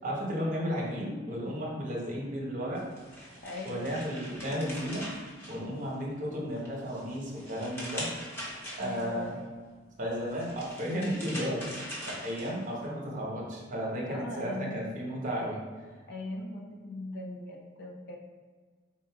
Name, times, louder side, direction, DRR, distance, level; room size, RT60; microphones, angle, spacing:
voice 1, 0.0-2.8 3.6-5.1 5.5-8.1 8.8-9.4 10.0-15.6, equal, 40° right, -3 dB, 1.1 m, -34 dB
sound 1, 2.8-6.1 6.5-9.2 10.2-12.9, equal, 10° left, 1.1 m, -42 dB
voice 2, 3.4-4.1 8.8-9.3 14.1-14.9 16.1-18.2, left 1 dB, 55° left, 0 dB, 0.7 m, -40 dB
4.3 x 2.6 x 4.6 m, 1.5 s
head